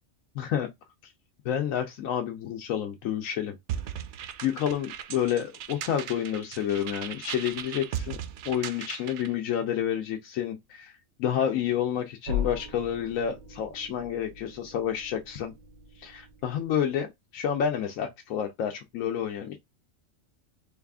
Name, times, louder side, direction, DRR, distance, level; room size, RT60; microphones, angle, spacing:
voice 1, 0.3-0.7 1.0-1.1 1.4-3.5 4.4-8.2 8.4-15.5 16.0-19.6, left 9 dB, 80° left, 1.0 m, -29 dB
sound 1, 3.7-9.3, right 9 dB, 65° right, 0.8 m, -37 dB
sound 2, 12.3-16.9, left 7 dB, 85° right, 1.3 m, -38 dB
3.9 x 2.4 x 3.5 m
omnidirectional pair, 1.4 m